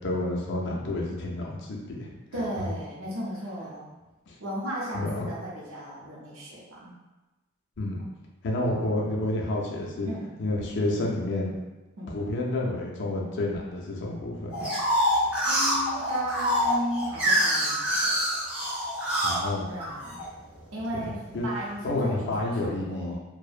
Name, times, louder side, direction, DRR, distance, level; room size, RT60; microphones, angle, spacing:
voice 1, 0.0-2.1 2.6-2.7 4.3-4.4 4.9-5.3 7.8-8.0 8.4-10.1 10.4-11.5 12.1-14.6 19.2-19.7 20.9-21.5 21.8-23.2, left 1 dB, 55° left, -2 dB, 0.4 m, -29 dB
voice 2, 2.3-3.9 4.4-7.0 8.0-8.1 10.0-10.3 12.0-12.2 15.4-18.1 19.7-20.2 20.7-23.2, equal, 75° right, -5 dB, 0.5 m, -35 dB
sound 1, 14.5-20.3 20.8-21.5, equal, 5° right, 0.5 m, -26 dB
2.5 x 2.0 x 2.4 m, 1.1 s
head